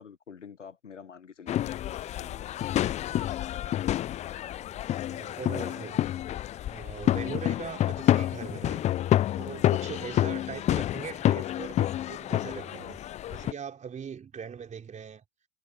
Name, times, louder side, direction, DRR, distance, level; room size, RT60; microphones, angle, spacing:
voice 1, 0.0-2.5 9.5-9.9, left 6 dB, 85° left, 1.5 m, -47 dB
sound 1, 1.5-13.5, left 12 dB, 20° left, 0.5 m, -28 dB
voice 2, 5.1-6.1 6.6-9.0 9.4-13.0 13.3-15.2, right 7 dB, 20° right, 4.1 m, -41 dB
hypercardioid pair, 100°, 35 cm